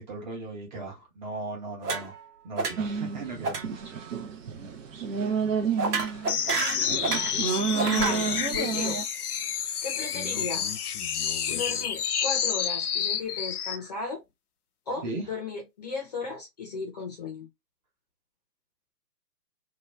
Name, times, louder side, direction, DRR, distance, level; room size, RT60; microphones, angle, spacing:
voice 1, 0.0-2.2 2.4-3.9 15.0-15.3, right 2 dB, 30° right, 1.0 m, -37 dB
sound 1, 1.8-2.3 2.6-3.0 3.4-3.7 3.9-4.2 5.8-7.4 7.7-8.2, right 4 dB, 65° right, 1.2 m, -30 dB
sound 2, 2.8-9.0, right 6 dB, 50° right, 0.8 m, -30 dB
sound 3, 6.3-13.8, left 8 dB, 65° left, 0.6 m, -29 dB
voice 2, 7.8-8.3 8.5-9.0 9.8-10.7 11.5-14.2 14.9-17.5, left 4 dB, 25° left, 0.7 m, -35 dB
2.9 x 2.3 x 3.1 m
hypercardioid pair, 150°, 50 cm